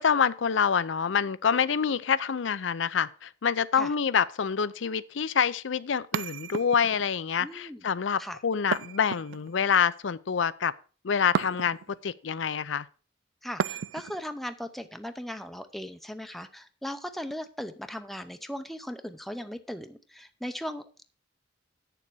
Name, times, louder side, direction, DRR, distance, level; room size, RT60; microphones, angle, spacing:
voice 1, 0.0-10.7 11.0-11.8 12.0-12.9, left 7 dB, 75° left, 0.5 m, -26 dB
sound 1, 6.1-7.1 8.7-9.7 11.3-12.0 13.6-14.2, right 7 dB, 85° right, 0.4 m, -33 dB
voice 2, 7.4-7.9 8.2-8.4 13.4-21.0, equal, ahead, 0.6 m, -38 dB
8.6 x 6.9 x 6.2 m
head